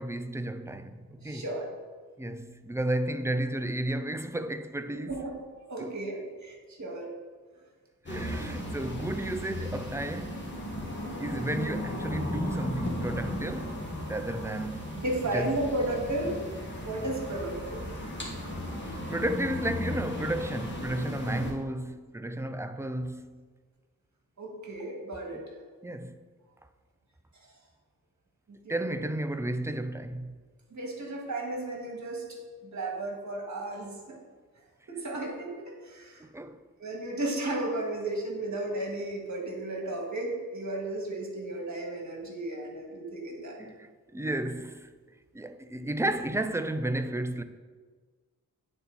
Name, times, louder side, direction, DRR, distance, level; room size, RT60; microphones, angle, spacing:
voice 1, 0.0-1.4 2.2-5.1 5.8-5.9 8.1-10.5 11.2-13.8 14.1-15.0 15.3-15.5 18.8-23.4 25.8-26.2 28.7-30.3 36.2-36.6 43.6-44.9 45.3-47.4, right 1 dB, 10° right, 0.3 m, -33 dB
voice 2, 1.2-1.7 5.1-7.1 8.2-8.3 14.9-16.4 16.8-17.9 24.4-25.7 27.3-27.5 28.5-28.9 30.7-34.2 34.9-36.2 36.8-43.6, right 1 dB, 55° right, 1.8 m, -34 dB
sound 1, 8.1-21.5, left 1 dB, 30° left, 1.6 m, -36 dB
9.2 x 4.1 x 4.0 m
cardioid pair, 80°, 35 cm